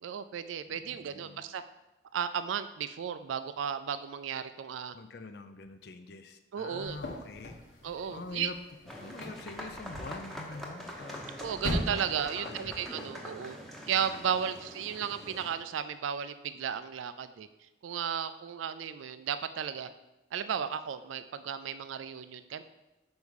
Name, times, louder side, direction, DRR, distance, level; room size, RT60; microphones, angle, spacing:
voice 1, 0.0-1.6 2.1-4.9 6.5-7.0 7.8-8.5 11.4-13.6 13.9-17.5 17.8-19.9 20.3-22.6, right 8 dB, 90° right, 12 dB, 0.4 m, -34 dB
voice 2, 0.7-1.4 4.9-7.6 8.1-8.6 9.0-11.4 12.0-13.6, left 3 dB, 55° left, 8 dB, 0.5 m, -45 dB
sound 1, 6.8-12.7, left 1 dB, 90° left, 1.3 m, -40 dB
sound 2, 8.9-15.5, equal, ahead, 0.8 m, -44 dB
5.3 x 4.7 x 6.3 m, 0.98 s
head